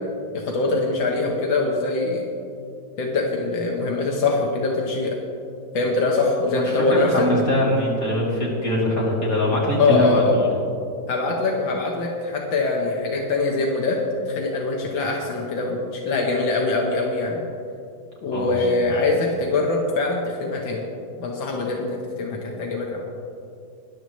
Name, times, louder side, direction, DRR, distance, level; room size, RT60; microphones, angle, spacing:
voice 1, 0.3-2.2 3.0-5.2 5.7-7.3 9.8-10.4 11.1-14.0 14.3-17.5 18.2-20.8 21.2-23.1, left 3 dB, 85° left, -1 dB, 1.9 m, -23 dB
voice 2, 6.5-10.5 18.3-18.5 18.9-19.1, left 1 dB, 45° left, -5 dB, 3.4 m, -22 dB
20.0 x 11.0 x 3.1 m, 2.5 s
omnidirectional pair, 2.0 m